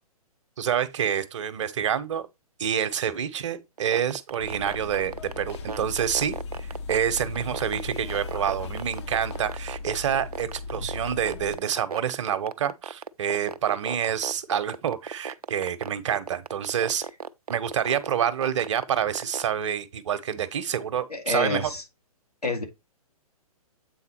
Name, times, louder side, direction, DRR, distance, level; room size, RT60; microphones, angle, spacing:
voice 1, 0.6-2.2 2.6-6.3 6.6-17.0 17.5-21.7, right 9 dB, 50° right, 1.0 m, -27 dB
sound 1, 3.8-19.4, right 6 dB, 80° right, 0.6 m, -35 dB
sound 2, 4.4-11.6, left 4 dB, 45° left, 0.9 m, -37 dB
voice 2, 21.1-21.8 22.4-22.6, left 3 dB, 85° left, 2.3 m, -28 dB
8.0 x 4.0 x 4.4 m
figure-of-eight pair, 120°, 19 cm